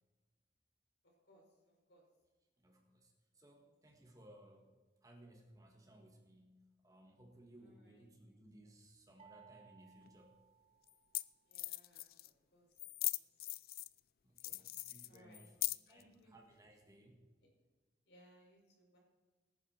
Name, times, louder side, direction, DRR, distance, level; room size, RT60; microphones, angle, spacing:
voice 1, 2.6-4.7 5.0-10.4 14.2-17.2, right 1 dB, 20° right, 2 dB, 1.7 m, -62 dB
sound 1, 9.2-11.3, right 8 dB, 35° right, 0.7 m, -64 dB
sound 2, 10.1-10.2 10.9-11.0 11.1-11.2 11.5-12.3 12.8-14.0 14.4-16.0, left 19 dB, 55° left, 0.4 m, -40 dB
voice 2, 11.5-12.1 12.5-12.7 13.1-13.2 14.4-15.5 15.9-16.3 18.1-19.0, equal, 75° left, -1 dB, 5.2 m, -65 dB
18.5 x 10.0 x 4.5 m, 1.3 s
head